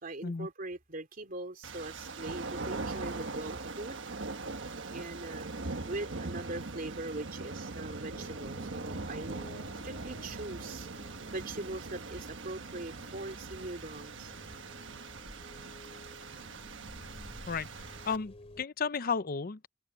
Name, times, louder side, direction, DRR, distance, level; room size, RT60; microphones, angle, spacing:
voice 1, 0.0-4.0 4.9-9.4 9.8-10.9 11.3-14.3, right 2 dB, 50° right, 2.9 m, -41 dB
sound 1, 1.6-18.2, right 3 dB, 80° right, 1.3 m, -41 dB
sound 2, 8.1-18.6, left 1 dB, 35° left, 3.2 m, -53 dB
voice 2, 18.0-19.7, left 5 dB, 50° left, 0.6 m, -33 dB
head